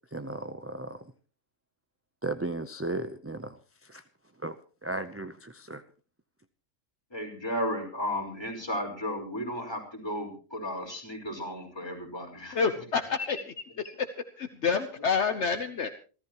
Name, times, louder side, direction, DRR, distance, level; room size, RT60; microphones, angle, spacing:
voice 1, 0.1-1.0 2.2-3.5 3.9-4.0 4.4-4.5 4.8-5.8, right 2 dB, 15° right, 10 dB, 0.5 m, -35 dB
voice 2, 7.1-12.8, equal, 20° left, 1 dB, 5.2 m, -34 dB
voice 3, 12.5-13.4 13.8-13.9 14.4-15.9, left 5 dB, 60° left, 9 dB, 1.3 m, -28 dB
27.5 x 13.5 x 3.0 m, 0.37 s
omnidirectional pair, 1.3 m